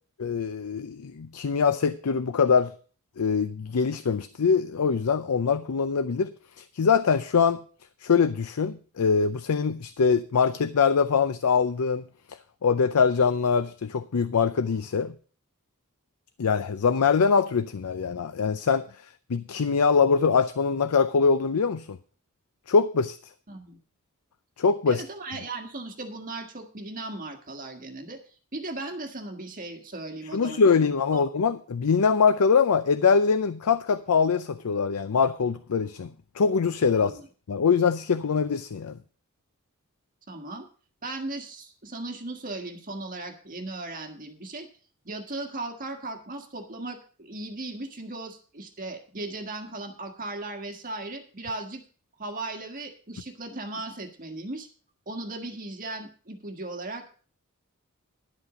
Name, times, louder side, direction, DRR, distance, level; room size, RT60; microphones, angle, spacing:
voice 1, 0.2-2.7 3.2-6.3 6.6-7.6 8.0-12.0 12.6-15.1 16.4-18.8 19.3-22.0 22.7-23.2 24.6-25.0 30.3-36.1 36.4-37.2 37.5-39.0, left 5 dB, 85° left, 0.5 m, -23 dB
voice 2, 23.5-23.8 24.9-31.3 36.9-37.3 40.3-40.7 41.0-44.7 45.0-51.8 52.2-54.7 55.0-57.1, right 2 dB, 40° right, 1.6 m, -37 dB
11.5 x 8.2 x 5.0 m
head